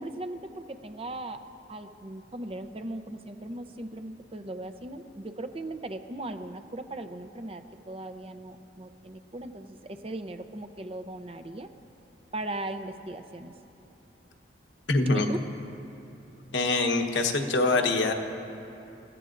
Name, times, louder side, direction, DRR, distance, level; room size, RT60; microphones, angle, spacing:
voice 1, 0.0-1.4 1.7-11.7 12.3-13.5 15.1-15.4, right 1 dB, 30° right, 8 dB, 0.7 m, -38 dB
voice 2, 14.9-15.3 16.5-18.1, left 3 dB, 90° left, 4 dB, 1.1 m, -24 dB
29.0 x 15.0 x 2.6 m, 2.8 s
head